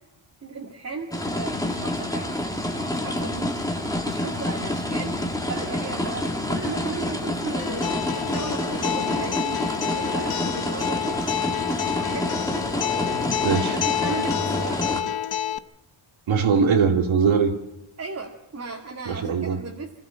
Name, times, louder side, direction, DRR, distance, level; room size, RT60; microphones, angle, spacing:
voice 1, 0.4-2.3 2.9-3.7 4.1-5.2 5.4-11.2 11.9-12.5 13.7-15.2 18.0-20.0, right 4 dB, 35° right, -1 dB, 2.3 m, -35 dB
sound 1, 1.1-15.0, left 1 dB, 5° left, 2.1 m, -28 dB
Acoustic guitar, 7.6-15.6, left 10 dB, 50° left, 0.8 m, -28 dB
voice 2, 13.4-13.8 16.3-17.5 19.1-19.6, right 5 dB, 75° right, 5 dB, 2.6 m, -21 dB
25.5 x 14.5 x 7.6 m, 0.88 s
wide cardioid pair, 135°, 48 cm